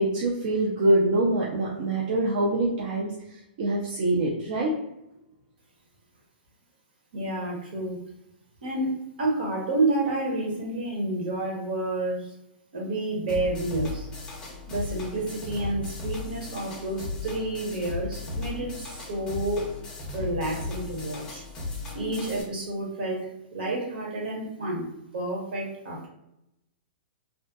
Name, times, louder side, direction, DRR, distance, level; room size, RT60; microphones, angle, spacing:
voice 1, 0.0-3.1 3.6-4.7, right 1 dB, 50° right, -4 dB, 0.5 m, -24 dB
voice 2, 7.1-8.0 8.6-12.3 12.7-14.1 14.7-19.7 20.1-21.4 21.9-26.1, right 2 dB, 70° right, -1 dB, 1.0 m, -30 dB
sound 1, 13.3-22.4, left 3 dB, 15° left, 0.6 m, -36 dB
2.6 x 2.1 x 2.3 m, 0.86 s
hypercardioid pair, 155°, 5 cm